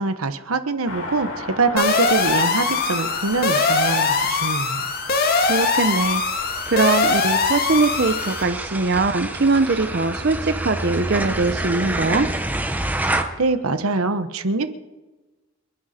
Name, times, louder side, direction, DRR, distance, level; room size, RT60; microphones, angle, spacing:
voice 1, 0.0-4.8 13.4-14.7, right 3 dB, 80° right, 11 dB, 1.1 m, -24 dB
Car passing by, 0.8-10.8 11.1-11.2, left 2 dB, 70° left, 5.0 m, -38 dB
sound 1, 1.8-8.4, left 4 dB, 45° left, 1.6 m, -21 dB
sound 2, 2.1-13.2, right 1 dB, 10° right, 0.9 m, -30 dB
voice 2, 5.4-12.3, right 3 dB, 50° right, 9 dB, 0.7 m, -21 dB
29.5 x 10.0 x 4.3 m, 1.2 s
head